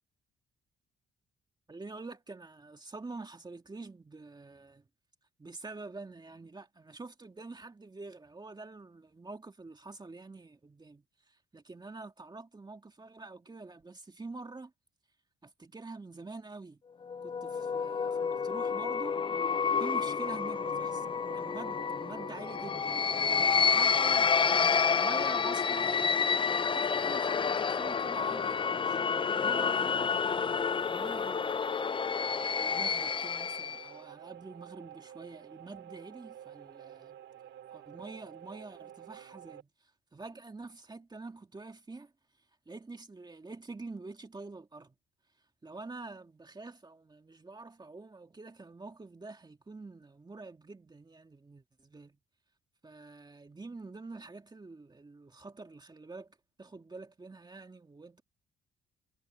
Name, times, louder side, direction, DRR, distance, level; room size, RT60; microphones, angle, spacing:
voice 1, 1.7-4.9 5.4-14.7 15.4-16.8 17.2-19.1 19.8-23.0 23.6-26.1 26.7-28.9 29.4-30.1 30.9-31.5 32.1-37.2 37.7-42.1 42.7-45.0 45.6-52.2 52.8-58.2, right 3 dB, 20° right, 2.3 m, -46 dB
sound 1, 17.1-33.9, left 6 dB, 25° left, 0.4 m, -29 dB
sound 2, 20.2-39.6, right 11 dB, 75° right, 3.0 m, -50 dB
cardioid pair, 90°, 20 cm